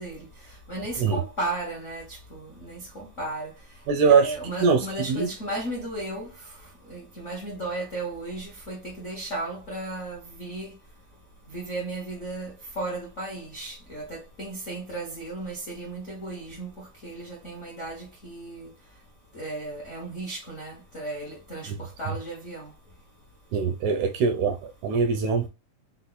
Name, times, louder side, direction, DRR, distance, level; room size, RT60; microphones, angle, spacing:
voice 1, 0.0-3.5 4.0-10.7 11.5-18.7 19.3-22.7, right 2 dB, 70° left, 0.6 m, -35 dB
voice 2, 3.9-5.3 23.5-25.5, right 5 dB, 80° right, 1.8 m, -23 dB
5.4 x 2.1 x 3.9 m
omnidirectional pair, 3.8 m